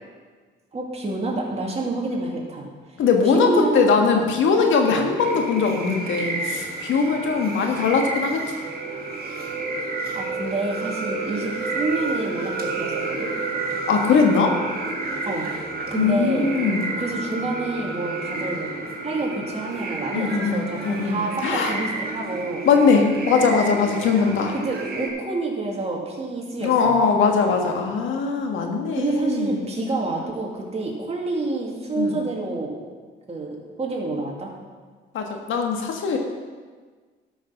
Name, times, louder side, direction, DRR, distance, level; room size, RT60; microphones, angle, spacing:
voice 1, 0.7-2.7 3.2-4.1 4.8-5.0 10.1-13.3 15.3-15.5 15.9-16.5 17.0-22.7 24.6-27.0 29.0-32.7 33.3-34.5, right 2 dB, 30° right, -1 dB, 2.5 m, -28 dB
voice 2, 3.0-8.4 13.9-14.5 15.9-16.9 20.1-21.8 22.6-24.5 26.6-29.7 32.0-32.2 35.1-36.2, left 5 dB, 80° left, 3 dB, 1.6 m, -21 dB
sound 1, 5.2-25.1, right 3 dB, 50° right, 2.1 m, -30 dB
12.0 x 6.4 x 6.0 m, 1.5 s
cardioid pair, 90°, 20 cm